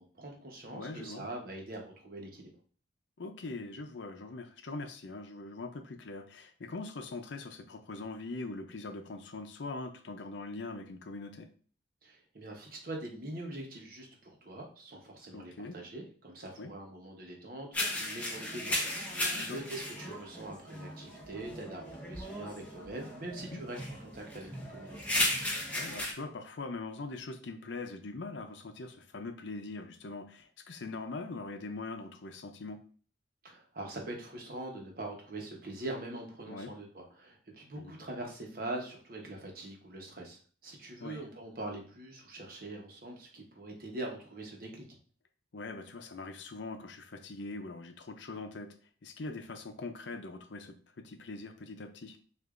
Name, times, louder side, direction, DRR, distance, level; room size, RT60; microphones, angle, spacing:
voice 1, 0.0-2.5 12.0-25.1 33.4-44.9, right 2 dB, 50° right, 1 dB, 1.0 m, -43 dB
voice 2, 0.6-1.3 3.2-11.5 15.3-15.8 16.6-16.7 19.3-19.6 23.5-23.6 25.7-32.8 36.5-36.7 37.8-37.9 41.0-41.2 45.5-48.7 49.0-52.2, left 3 dB, 80° left, 7 dB, 0.6 m, -42 dB
sound 1, 17.7-26.1, left 1 dB, 10° left, 0.8 m, -36 dB
6.5 x 2.5 x 2.5 m, 0.43 s
head